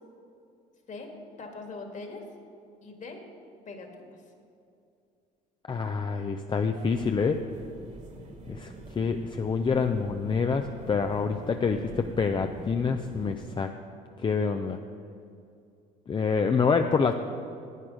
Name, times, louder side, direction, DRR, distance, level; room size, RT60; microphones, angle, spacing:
voice 1, 1.4-2.2 2.8-3.2 3.7-4.2, left 3 dB, 45° left, 4 dB, 1.9 m, -41 dB
voice 2, 5.7-7.4 8.5-13.7 14.2-14.8 16.1-17.1, left 5 dB, 25° left, 6 dB, 0.5 m, -27 dB
sound 1, 6.7-13.5, right 2 dB, 40° right, 1.7 m, -45 dB
11.0 x 8.8 x 5.0 m, 2.5 s
supercardioid pair, 75°, 18 cm